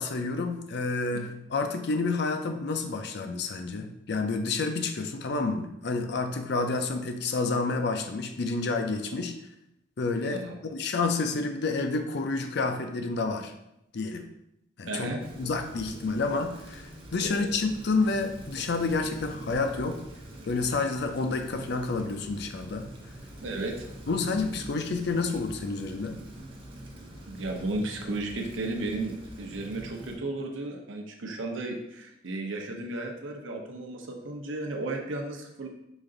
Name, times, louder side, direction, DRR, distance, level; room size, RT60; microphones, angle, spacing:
voice 1, 0.0-9.4 10.0-13.5 13.9-14.3 14.8-20.0 20.5-22.9 24.1-26.2, left 3 dB, 60° left, 6 dB, 0.5 m, -29 dB
voice 2, 14.9-15.2 17.4-17.5 23.4-23.7 27.3-35.7, right 2 dB, 80° right, 2 dB, 0.7 m, -34 dB
Rain, 15.2-30.2, right 1 dB, 30° right, 0.7 m, -45 dB
5.0 x 2.5 x 3.8 m, 0.82 s
head